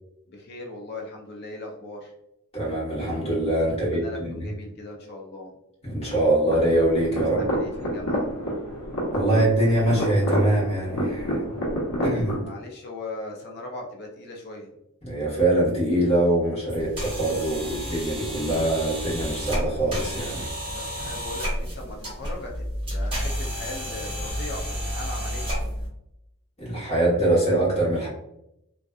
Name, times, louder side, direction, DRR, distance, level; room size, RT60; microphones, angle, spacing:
voice 1, 0.3-2.2 3.8-5.5 7.3-8.3 12.4-14.7 20.6-22.7 22.9-25.6, left 2 dB, 50° left, 0 dB, 0.4 m, -39 dB
voice 2, 2.5-4.4 5.8-7.4 9.1-11.4 12.0-12.4 15.0-20.5 26.6-28.1, right 1 dB, 30° left, -6 dB, 1.1 m, -23 dB
sound 1, 6.5-12.4, equal, 80° left, 0.8 m, -28 dB
sound 2, 16.7-25.9, equal, 25° right, 1.0 m, -31 dB
2.5 x 2.3 x 2.3 m, 0.82 s
head